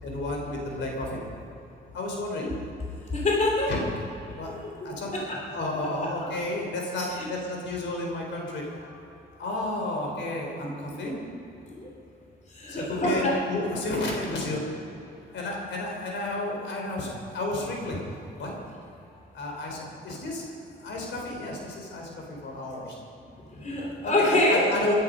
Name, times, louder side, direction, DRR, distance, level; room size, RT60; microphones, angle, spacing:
voice 1, 0.0-1.4 1.9-2.5 3.7-3.8 4.4-4.6 4.8-8.9 9.4-11.2 12.7-14.6 15.3-18.0 18.4-18.6 19.3-20.5 20.8-23.0 24.0-24.9, left 2 dB, 70° left, 0 dB, 4.3 m, -32 dB
voice 2, 3.1-3.7 4.8-5.2 10.6-10.7 11.0-11.1 11.7-11.9 12.5-13.4 23.5-24.6, left 1 dB, 35° left, -2 dB, 3.2 m, -25 dB
21.5 x 11.5 x 5.4 m, 2.9 s
cardioid pair, 90°, 20 cm